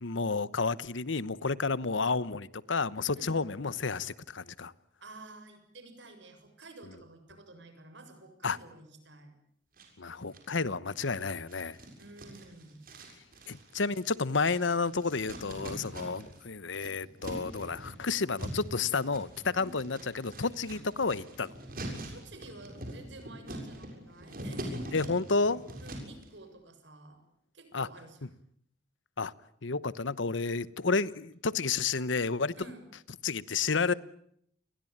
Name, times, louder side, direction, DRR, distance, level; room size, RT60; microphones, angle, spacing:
voice 1, 0.0-4.7 8.4-8.6 10.0-11.8 13.5-21.5 24.9-25.6 27.7-27.9 29.2-29.3 29.6-32.5 33.2-33.9, left 4 dB, 85° left, 1.0 m, -31 dB
voice 2, 5.0-9.3 12.0-12.9 19.5-19.8 22.1-24.9 25.8-27.2 27.5-28.2 32.6-32.8, right 2 dB, 75° right, 7.2 m, -50 dB
sound 1, 9.8-10.6 10.9-16.4 16.7-26.2, right 1 dB, 50° right, 6.9 m, -43 dB
29.5 x 22.0 x 8.8 m
head